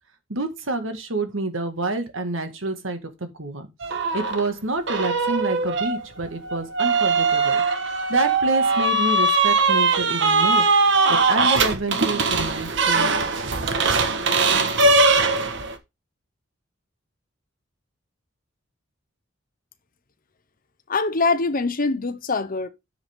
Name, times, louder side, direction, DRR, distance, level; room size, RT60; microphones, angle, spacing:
voice 1, 0.3-3.7 4.1-7.6 8.1-10.7 11.1-13.5, right 2 dB, 80° right, 1.9 m, -28 dB
sound 1, 3.8-4.4 4.9-15.8, right 3 dB, 65° right, 1.4 m, -20 dB
voice 2, 20.9-22.7, left 3 dB, 45° left, 0.9 m, -23 dB
9.9 x 7.3 x 3.6 m
head